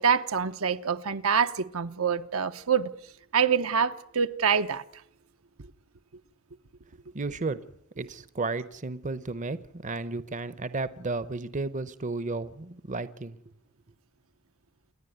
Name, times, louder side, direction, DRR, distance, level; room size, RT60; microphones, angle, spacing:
voice 1, 0.0-2.9 3.3-4.8, right 6 dB, 70° right, 0.9 m, -25 dB
voice 2, 7.1-7.6 8.0-13.4, right 3 dB, 35° right, 0.8 m, -33 dB
28.0 x 10.5 x 9.3 m
head